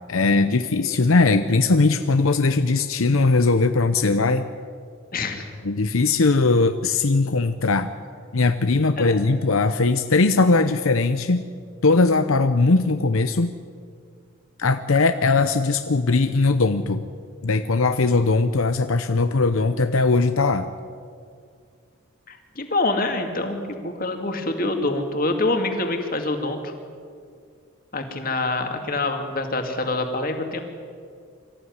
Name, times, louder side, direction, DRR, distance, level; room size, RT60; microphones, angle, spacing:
voice 1, 0.1-4.5 5.6-7.9 8.3-11.4 11.8-13.6 14.6-17.0 17.4-20.7, left 3 dB, 75° left, 9 dB, 0.8 m, -20 dB
voice 2, 5.1-5.5 9.0-9.2 22.3-26.7 27.9-30.6, left 2 dB, 40° left, 5 dB, 2.4 m, -26 dB
24.0 x 14.5 x 9.6 m, 2.2 s
head